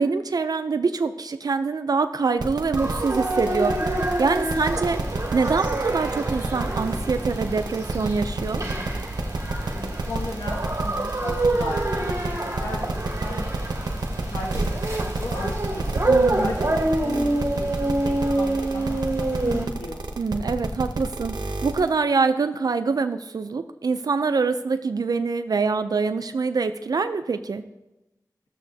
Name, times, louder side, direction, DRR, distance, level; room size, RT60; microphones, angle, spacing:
voice 1, 0.0-3.8 4.2-5.0 5.3-8.6 16.1-16.5 20.2-21.3 21.6-27.6, right 4 dB, 65° right, 10 dB, 0.4 m, -24 dB
sound 1, 2.4-21.9, right 3 dB, 85° right, 0.8 m, -29 dB
sound 2, 2.7-19.7, right 2 dB, 50° right, 1.9 m, -27 dB
voice 2, 9.7-13.9 14.3-15.9 16.4-16.7 17.0-20.0, left 2 dB, 80° left, 0 dB, 1.1 m, -36 dB
14.5 x 7.0 x 2.7 m, 0.99 s
wide cardioid pair, 65°, 7 cm